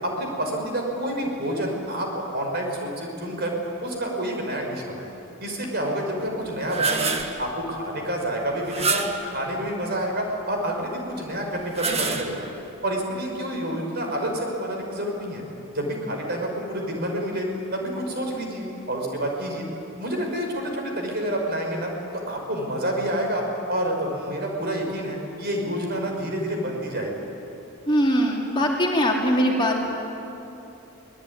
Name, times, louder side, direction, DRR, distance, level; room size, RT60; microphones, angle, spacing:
voice 1, 0.0-3.5 3.8-5.1 5.4-7.1 7.4-12.5 12.8-15.4 15.7-17.5 17.7-19.7 20.0-27.1, right 1 dB, 45° right, 1 dB, 5.3 m, -28 dB
sound 1, 6.5-7.4 8.6-9.3 11.5-12.6, right 4 dB, 30° right, 1.5 m, -27 dB
voice 2, 27.9-29.8, equal, 20° left, -1 dB, 2.6 m, -21 dB
25.0 x 19.0 x 9.8 m, 3.0 s
head